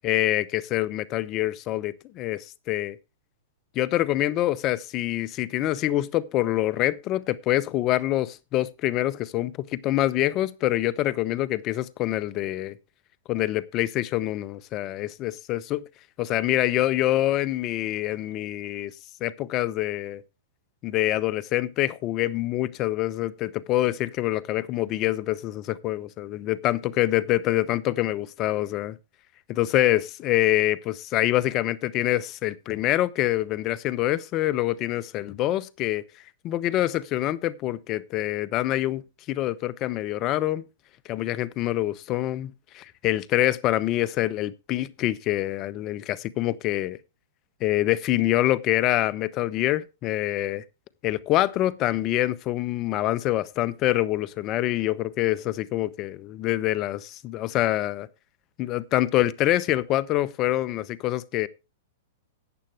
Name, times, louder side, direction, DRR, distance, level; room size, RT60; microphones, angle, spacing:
voice 1, 0.0-3.0 3.7-12.8 13.3-15.8 16.2-18.9 19.2-20.2 20.8-29.0 29.5-36.0 36.4-40.6 41.1-47.0 47.6-50.6 51.0-58.1 58.6-61.5, left 15 dB, 40° left, 0.8 m, -25 dB
14.0 x 9.0 x 3.4 m
hypercardioid pair, 110°, 0 cm